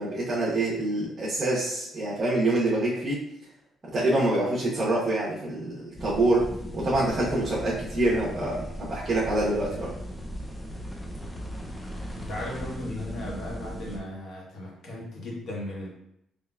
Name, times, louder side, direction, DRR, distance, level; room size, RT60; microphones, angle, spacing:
voice 1, 0.0-3.2 3.9-9.9, right 2 dB, 40° right, -8 dB, 1.1 m, -26 dB
sound 1, 6.0-14.0, equal, 15° left, 0.6 m, -38 dB
voice 2, 11.9-15.9, left 1 dB, 60° left, -4 dB, 1.5 m, -37 dB
3.8 x 3.3 x 2.4 m, 0.77 s
cardioid pair, 95°, 0 cm